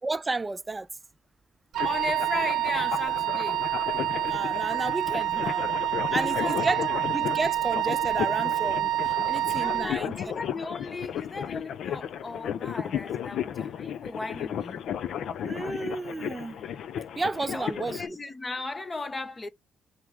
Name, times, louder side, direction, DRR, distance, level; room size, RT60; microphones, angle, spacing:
voice 1, 0.0-0.9 4.3-5.7 6.1-6.9 7.1-10.2 15.4-16.6 17.2-18.0, right 3 dB, 20° right, 0.4 m, -32 dB
Wind instrument woodwind instrument, 1.7-9.9, right 14 dB, 80° right, 0.5 m, -28 dB
sound 1, 1.8-18.1, left 9 dB, 70° left, 0.5 m, -34 dB
voice 2, 1.8-3.7 6.1-7.0 9.2-9.3 9.6-14.8 17.5-19.5, left 3 dB, 25° left, 0.8 m, -36 dB
5.9 x 2.0 x 3.6 m
cardioid pair, 90°, 0 cm